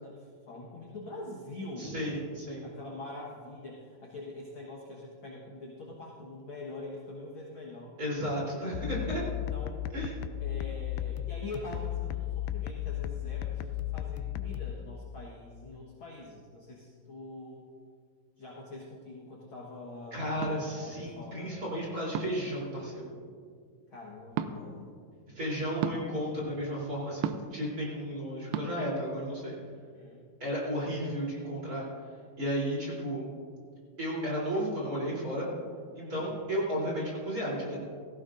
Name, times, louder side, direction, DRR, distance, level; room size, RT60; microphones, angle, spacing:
voice 1, 0.0-1.9 2.6-8.0 9.5-9.8 10.4-17.6 18.4-21.6 23.9-24.9 29.9-30.2 35.9-36.3, left 2 dB, 50° left, -3 dB, 1.6 m, -44 dB
voice 2, 1.8-2.6 8.0-9.2 9.9-10.1 20.1-23.0 25.3-29.6 30.4-31.9 32.4-33.3 34.0-35.5 35.9-37.8, equal, 25° right, -6 dB, 3.7 m, -33 dB
sound 1, 8.7-14.7, left 12 dB, 80° left, 2.1 m, -35 dB
sound 2, 20.4-20.6 22.1-22.5 24.3-24.5 25.8-26.0 27.2-27.6 28.5-28.7, right 10 dB, 85° right, 2.3 m, -32 dB
18.0 x 15.0 x 2.6 m, 2.2 s
omnidirectional pair, 4.0 m